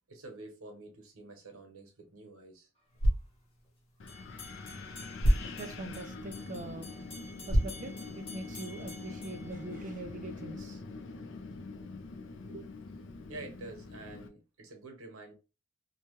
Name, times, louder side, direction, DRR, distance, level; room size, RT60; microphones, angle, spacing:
voice 1, 0.1-2.7 3.0-3.1 13.3-15.3, right 2 dB, 90° right, 1.0 m, -48 dB
swing ruler reversed, 2.8-8.8, equal, 85° left, 0.8 m, -33 dB
Wind, 4.0-14.3, left 3 dB, 60° left, 0.4 m, -44 dB
sound 1, 4.1-10.3, left 3 dB, 25° left, 0.9 m, -51 dB
voice 2, 5.6-6.9 7.5-10.8 12.4-12.7, right 2 dB, 40° right, 0.4 m, -43 dB
2.9 x 2.2 x 3.0 m
head